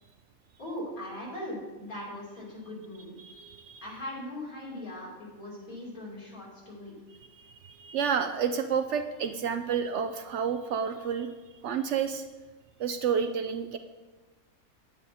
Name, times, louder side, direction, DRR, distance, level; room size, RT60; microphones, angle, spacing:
voice 1, 0.6-3.1 3.8-7.0, left 1 dB, 75° left, -5 dB, 3.5 m, -40 dB
voice 2, 3.2-3.8 7.4-11.3 11.6-12.3 12.8-13.8, right 7 dB, 65° right, 8 dB, 0.8 m, -30 dB
9.6 x 8.9 x 4.2 m, 1.3 s
omnidirectional pair, 1.5 m